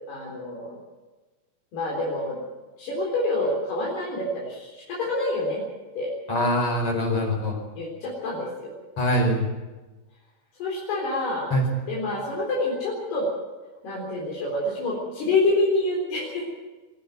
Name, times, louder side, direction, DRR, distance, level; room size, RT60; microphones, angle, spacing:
voice 1, 0.1-0.8 1.7-2.5 2.8-5.6 6.0-6.1 7.8-8.7 10.6-11.5 11.9-13.3 13.8-16.4, left 2 dB, 75° left, -4 dB, 6.0 m, -27 dB
voice 2, 6.3-7.6 9.0-9.4 11.5-11.6, equal, 35° left, 1 dB, 5.5 m, -23 dB
22.5 x 13.0 x 9.3 m, 1.2 s
omnidirectional pair, 4.6 m